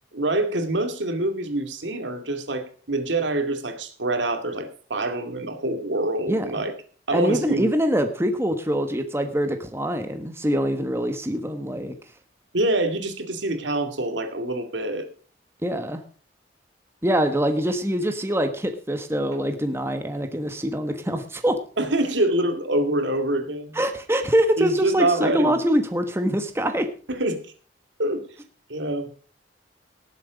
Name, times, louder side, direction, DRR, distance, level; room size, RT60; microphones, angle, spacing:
voice 1, 0.1-6.7 7.1-7.7 12.5-15.1 19.3-19.4 21.8-23.8 24.6-25.6 27.1-27.4 28.0-28.2 28.7-29.1, right 1 dB, 80° right, 7 dB, 2.4 m, -25 dB
voice 2, 7.1-11.9 15.6-16.0 17.0-21.6 23.7-26.9, equal, 15° right, 7 dB, 1.2 m, -24 dB
18.5 x 7.8 x 5.1 m, 0.41 s
head